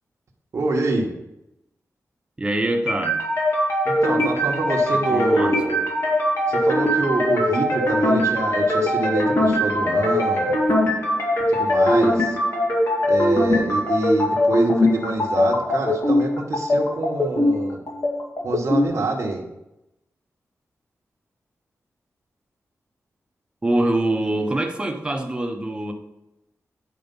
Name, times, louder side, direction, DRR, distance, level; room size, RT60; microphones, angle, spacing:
voice 1, 0.5-1.1 3.8-5.8 6.5-10.6 11.5-12.4 13.1-17.8 18.4-19.4, right 2 dB, 60° right, -1 dB, 1.3 m, -26 dB
voice 2, 2.4-3.2 4.9-5.6 23.6-25.9, right 1 dB, 15° right, 3 dB, 1.0 m, -24 dB
sound 1, 2.9-18.9, left 1 dB, 55° left, 2.1 m, -21 dB
9.6 x 5.0 x 5.4 m, 0.89 s
wide cardioid pair, 145°, 5 cm